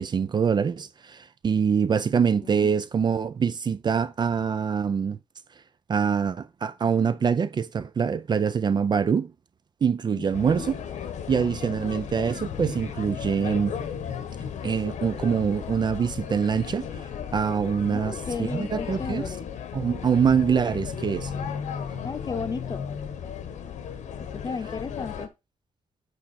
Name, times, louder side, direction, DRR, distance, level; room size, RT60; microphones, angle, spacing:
voice 1, 0.0-5.2 5.9-9.3 9.8-10.8 11.3-13.7 14.6-19.2 19.7-21.3, right 6 dB, 35° right, 0.5 m, -24 dB
voice 2, 10.1-10.7 17.9-19.5 22.0-22.9 24.2-25.3, left 5 dB, 35° left, 0.8 m, -35 dB
sound 1, 10.3-25.3, left 7 dB, 85° left, 1.2 m, -35 dB
8.3 x 4.8 x 4.2 m
wide cardioid pair, 160°, 12 cm